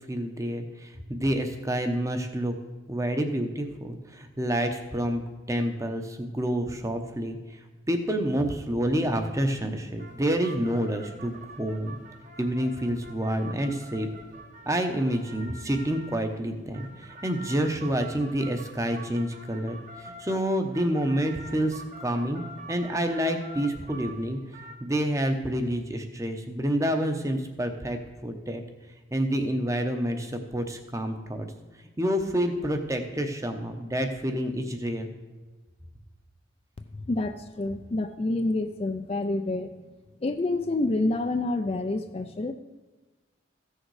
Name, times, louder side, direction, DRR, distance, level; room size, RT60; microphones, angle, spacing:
voice 1, 0.0-2.5 2.9-5.2 5.5-7.6 7.9-12.0 12.4-14.1 14.6-22.4 22.7-24.4 24.8-28.6 29.1-31.5 32.0-35.1, equal, 15° right, 6 dB, 0.8 m, -28 dB
sound 1, 8.2-24.8, right 1 dB, 40° right, 1.0 m, -47 dB
voice 2, 36.9-39.7 40.2-42.5, left 2 dB, 30° left, 7 dB, 0.4 m, -28 dB
14.5 x 6.5 x 4.8 m, 1.2 s
head